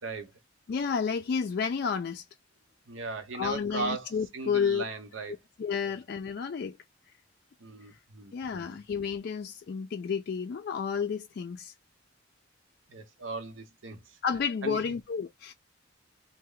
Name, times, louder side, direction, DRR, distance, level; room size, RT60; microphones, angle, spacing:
voice 1, 0.7-2.2 3.3-4.8 5.6-6.8 8.3-11.7 14.2-15.5, left 6 dB, 55° left, 0.3 m, -31 dB
voice 2, 2.9-5.4 5.8-5.9 7.6-8.8 12.9-14.0 14.6-14.8, right 3 dB, 90° right, 0.9 m, -38 dB
3.2 x 2.1 x 3.7 m
head